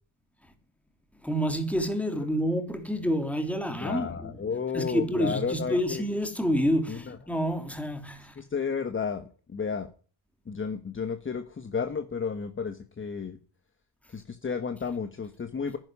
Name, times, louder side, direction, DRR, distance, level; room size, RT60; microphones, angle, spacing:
voice 1, 1.2-4.4 4.7-8.4, equal, 5° left, 3.2 m, -28 dB
voice 2, 3.8-6.0 6.9-7.2 8.4-9.9 10.5-13.4 14.1-15.8, left 6 dB, 25° left, 1.3 m, -32 dB
11.0 x 10.5 x 9.8 m
cardioid pair, 105°, 46 cm